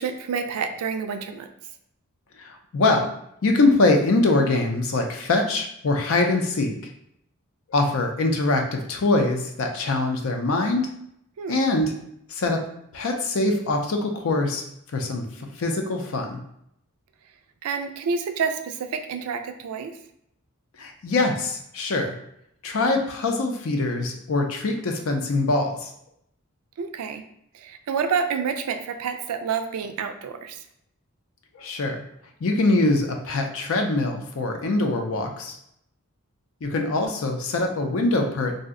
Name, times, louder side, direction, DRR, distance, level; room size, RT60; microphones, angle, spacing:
voice 1, 0.0-1.5 11.4-11.6 17.6-20.0 26.8-27.2 27.5-30.6, right 6 dB, 85° right, 7 dB, 0.4 m, -28 dB
voice 2, 2.4-3.1 3.4-6.9 7.7-10.9 11.5-11.9 12.3-12.6 12.9-14.6 14.9-16.4 20.8-22.1 22.6-25.9 31.5-32.0 32.4-35.6 36.6-38.6, left 2 dB, 65° left, 4 dB, 0.5 m, -23 dB
2.6 x 2.1 x 3.6 m, 0.74 s
head